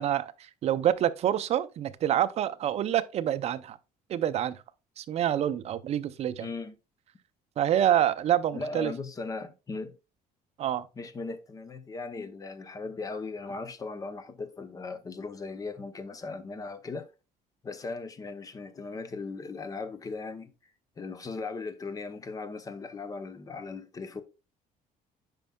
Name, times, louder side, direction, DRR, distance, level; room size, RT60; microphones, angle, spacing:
voice 1, 0.0-3.8 4.1-4.6 5.0-6.5 7.6-8.9 10.6-10.9, right 11 dB, 45° right, 0.5 m, -27 dB
voice 2, 6.4-6.7 8.5-9.9 11.0-17.1 17.6-20.5 21.0-24.2, left 3 dB, 25° left, 0.6 m, -38 dB
9.0 x 5.2 x 2.2 m
cardioid pair, 150°, 15 cm